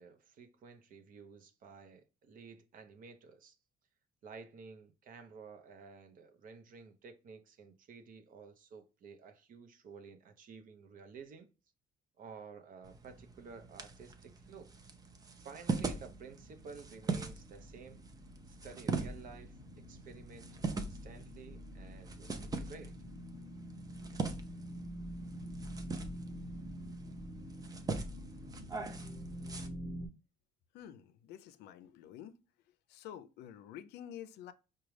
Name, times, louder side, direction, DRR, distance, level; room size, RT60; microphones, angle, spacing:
voice 1, 0.0-3.6 4.2-11.5 12.2-14.7 15.3-18.0 18.5-22.9, right 5 dB, 55° right, 0.7 m, -53 dB
sound 1, 12.8-29.7, right 4 dB, 20° right, 0.5 m, -42 dB
sound 2, 16.0-30.1, equal, 10° left, 0.9 m, -47 dB
voice 2, 30.7-32.3 32.9-34.5, left 10 dB, 80° left, 0.4 m, -49 dB
4.9 x 2.3 x 3.1 m
cardioid pair, 110°, 17 cm